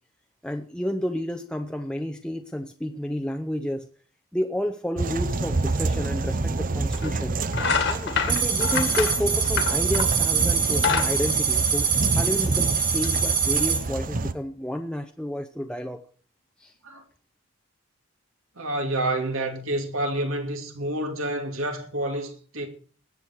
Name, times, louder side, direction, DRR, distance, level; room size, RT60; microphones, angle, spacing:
voice 1, 0.4-3.9 4.3-7.4 7.9-16.0 16.6-16.7, equal, 5° left, 0.7 m, -31 dB
sound 1, 5.0-14.3, right 3 dB, 40° right, 0.7 m, -28 dB
sound 2, 6.2-6.3 6.9-7.1 7.5-10.2 10.6-12.3, left 5 dB, 55° left, 1.9 m, -27 dB
sound 3, 8.3-13.8, right 6 dB, 20° right, 2.3 m, -24 dB
voice 2, 18.6-22.7, right 1 dB, 75° right, 2.7 m, -28 dB
20.0 x 8.3 x 4.6 m
head